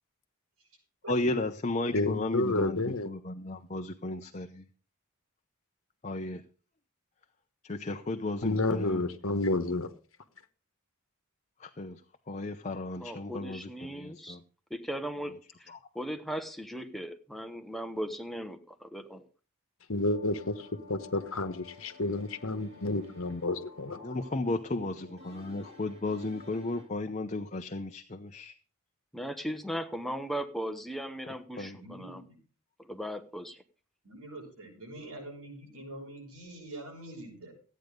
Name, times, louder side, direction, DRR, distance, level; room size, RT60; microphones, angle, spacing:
voice 1, 1.1-4.7 6.0-6.4 7.6-9.0 11.6-12.0 12.3-14.4 15.7-15.8 24.0-28.5 31.6-31.8, left 2 dB, 30° left, 0.7 m, -34 dB
voice 2, 1.9-3.1 8.4-9.9 19.9-24.0, left 2 dB, 60° left, 1.2 m, -30 dB
voice 3, 13.0-14.3 14.9-15.3 16.0-19.3 29.1-32.2 32.8-33.6, equal, ahead, 1.0 m, -37 dB
sound 1, 20.0-26.9, left 3 dB, 45° right, 3.2 m, -52 dB
voice 4, 31.6-32.4 34.0-37.5, right 1 dB, 80° right, 7.1 m, -45 dB
14.0 x 9.3 x 5.2 m
head